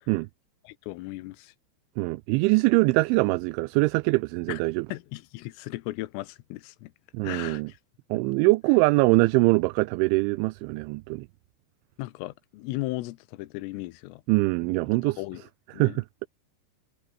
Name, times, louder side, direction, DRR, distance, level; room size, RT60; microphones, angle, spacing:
voice 1, 0.7-1.5 4.5-4.6 4.9-6.9 7.2-7.8 12.0-14.2 15.1-15.4 15.7-16.0, left 19 dB, 90° left, 3.6 m, -36 dB
voice 2, 2.0-4.9 7.1-7.7 8.1-11.3 14.3-15.2 15.7-16.3, right 24 dB, 85° right, 2.8 m, -23 dB
omnidirectional pair, 5.8 m